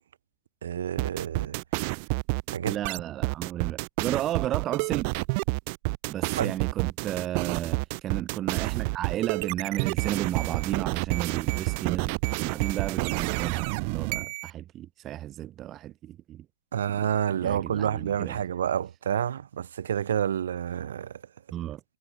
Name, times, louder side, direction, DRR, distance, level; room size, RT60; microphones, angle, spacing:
voice 1, 0.6-1.6 2.5-2.8 6.4-6.5 16.7-21.2, right 9 dB, 75° right, 0.9 m, -29 dB
sound 1, 1.0-14.5, right 32 dB, 45° right, 0.4 m, -29 dB
voice 2, 2.6-5.1 6.1-16.4 17.4-18.4 21.5-21.8, right 13 dB, 25° right, 1.7 m, -33 dB
hypercardioid pair, 135°, 0 cm